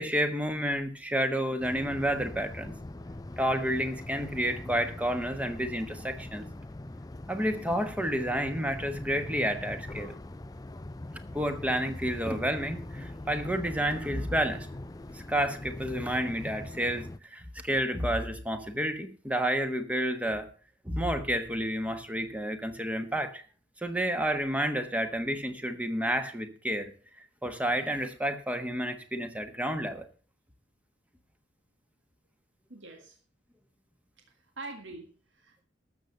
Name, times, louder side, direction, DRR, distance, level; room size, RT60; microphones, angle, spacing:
voice 1, 0.0-2.7 3.4-6.4 7.3-10.1 11.3-14.7 15.1-20.5 20.8-23.4 23.8-26.9 27.2-30.1, equal, 10° right, 8 dB, 1.2 m, -30 dB
sound 1, 1.6-17.2, left 1 dB, 20° left, 0.5 m, -42 dB
voice 2, 32.7-33.2 34.3-35.6, right 3 dB, 70° right, 4 dB, 1.8 m, -45 dB
12.5 x 7.1 x 6.5 m, 0.39 s
head